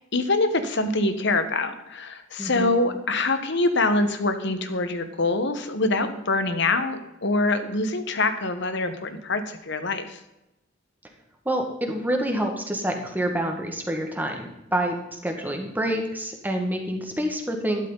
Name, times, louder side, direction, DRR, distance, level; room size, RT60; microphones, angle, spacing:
voice 1, 0.1-10.2, left 2 dB, 65° left, 9 dB, 1.4 m, -24 dB
voice 2, 2.4-2.7 11.5-17.9, right 1 dB, 10° right, 3 dB, 1.9 m, -27 dB
12.0 x 12.0 x 4.1 m, 0.91 s
head